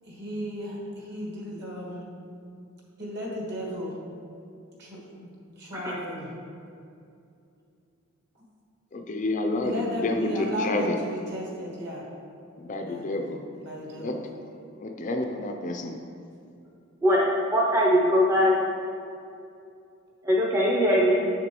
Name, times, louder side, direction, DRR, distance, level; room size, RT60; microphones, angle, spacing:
voice 1, 0.0-2.0 3.0-4.0 4.8-6.3 9.6-12.0 12.8-13.2 13.5-14.2, equal, 55° right, -3 dB, 1.5 m, -35 dB
voice 2, 8.9-9.7 10.0-10.9 12.6-13.4 14.0-14.2 14.8-15.9, left 2 dB, 35° left, 4 dB, 0.4 m, -29 dB
voice 3, 17.0-18.5 20.2-21.2, equal, 15° right, -4 dB, 0.5 m, -21 dB
6.8 x 6.8 x 3.0 m, 2.5 s
head